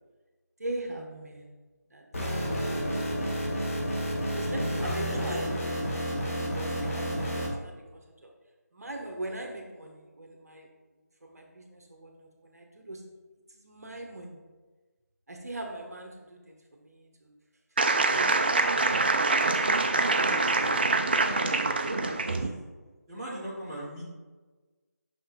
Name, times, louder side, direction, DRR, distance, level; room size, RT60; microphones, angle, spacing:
voice 1, 0.6-1.5 1.9-3.3 4.3-5.5 6.4-8.3 8.7-10.7 11.2-13.0 13.5-14.4 15.3-17.3 18.0-20.7, right 1 dB, 65° right, 1 dB, 1.1 m, -41 dB
sound 1, 2.1-7.5, equal, 50° left, 1.8 m, -30 dB
voice 2, 4.4-5.2 19.3-20.8 21.2-22.6 23.1-24.1, right 1 dB, 15° right, -8 dB, 1.4 m, -39 dB
sound 2, 17.8-22.5, right 3 dB, 35° right, 0.4 m, -25 dB
5.8 x 5.6 x 3.7 m, 1.3 s
figure-of-eight pair, 160°, 9 cm